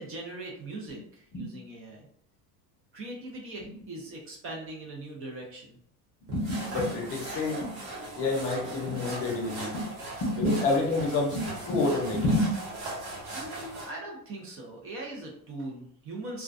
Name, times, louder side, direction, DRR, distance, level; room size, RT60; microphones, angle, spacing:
voice 1, 0.0-2.1 2.9-5.8 13.3-16.4, right 2 dB, 35° right, -1 dB, 0.5 m, -40 dB
voice 2, 6.3-7.7 8.2-9.8 10.2-12.5, left 2 dB, 35° left, -1 dB, 0.7 m, -28 dB
sound 1, 6.3-13.9, right 2 dB, 65° right, 1.1 m, -39 dB
2.3 x 2.2 x 2.5 m, 0.67 s
cardioid pair, 155°, 38 cm